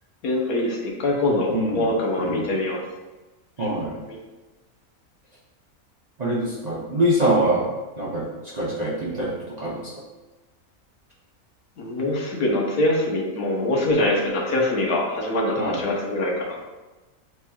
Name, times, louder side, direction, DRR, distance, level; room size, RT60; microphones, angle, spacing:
voice 1, 0.2-2.8 3.6-3.7 4.1-4.2 11.8-16.6, left 1 dB, 80° left, -1 dB, 1.4 m, -24 dB
voice 2, 1.5-1.9 2.2-2.5 3.6-4.0 6.2-7.7 8.0-8.3 8.5-9.3 9.6-9.8 15.6-15.8, right 1 dB, 40° right, -6 dB, 0.7 m, -24 dB
7.6 x 2.9 x 2.3 m, 1.2 s
omnidirectional pair, 1.5 m